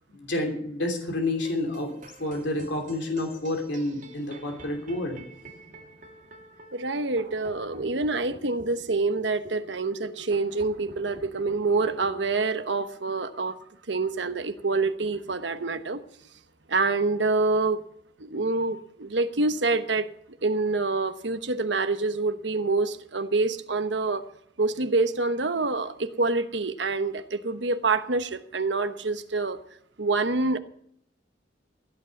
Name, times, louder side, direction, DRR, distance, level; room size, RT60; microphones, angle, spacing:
voice 1, 0.1-1.9 2.2-5.2, left 2 dB, 70° left, 2 dB, 3.0 m, -29 dB
sound 1, 1.2-12.7, equal, 45° right, 2.2 m, -47 dB
voice 2, 6.7-13.6 13.9-16.0 16.7-17.8 18.2-20.1 20.4-24.2 24.6-29.6 30.0-30.6, right 3 dB, 70° right, 9 dB, 1.0 m, -26 dB
15.5 x 8.5 x 7.7 m, 0.69 s
head